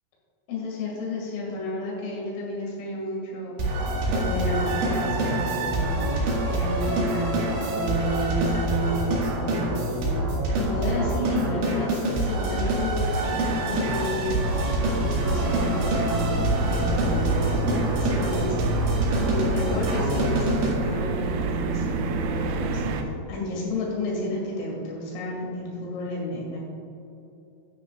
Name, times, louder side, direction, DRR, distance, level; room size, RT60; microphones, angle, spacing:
voice 1, 0.5-14.5 14.8-26.6, left 1 dB, 80° left, -4 dB, 4.9 m, -31 dB
sound 1, 3.6-20.7, right 1 dB, 70° right, 3.9 m, -26 dB
sound 2, 13.0-23.0, right 3 dB, 90° right, 3.3 m, -28 dB
11.5 x 9.4 x 2.5 m, 2.9 s
omnidirectional pair, 5.7 m